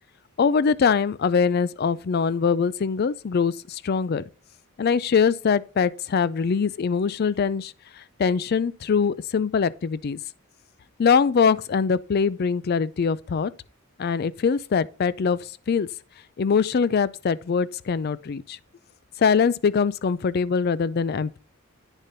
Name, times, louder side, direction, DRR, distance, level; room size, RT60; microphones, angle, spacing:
voice 1, 0.4-4.2 4.8-10.2 11.0-13.5 14.0-15.4 15.7-15.9 16.4-18.6 19.2-21.4, left 6 dB, 45° left, 0.4 m, -23 dB
9.2 x 6.6 x 2.7 m
head